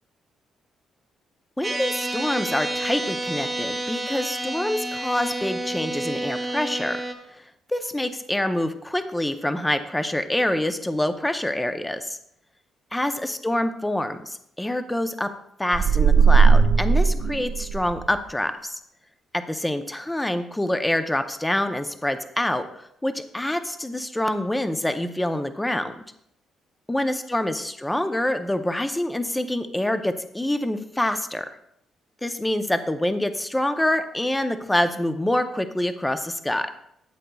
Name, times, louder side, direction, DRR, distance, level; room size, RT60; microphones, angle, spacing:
voice 1, 1.6-7.0 7.7-12.2 12.9-15.3 15.6-18.8 19.3-26.0 26.9-31.5 32.2-36.7, left 1 dB, 10° left, 8 dB, 0.7 m, -26 dB
sound 1, 1.6-7.1, right 2 dB, 20° right, 1.2 m, -29 dB
sound 2, 15.7-18.1, right 5 dB, 85° right, 0.6 m, -17 dB
12.5 x 8.0 x 2.3 m, 0.73 s
cardioid pair, 90°, 0 cm